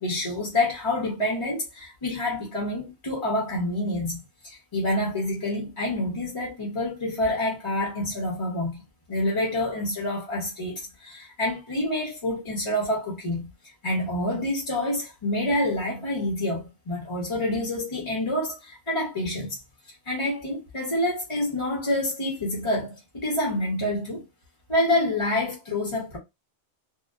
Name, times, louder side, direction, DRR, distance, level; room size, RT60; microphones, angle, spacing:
voice 1, 0.0-8.8 9.1-13.5 13.8-19.6 20.1-24.2 24.7-26.2, left 1 dB, 30° left, 0.7 m, -27 dB
2.5 x 2.1 x 2.3 m
omnidirectional pair, 1.2 m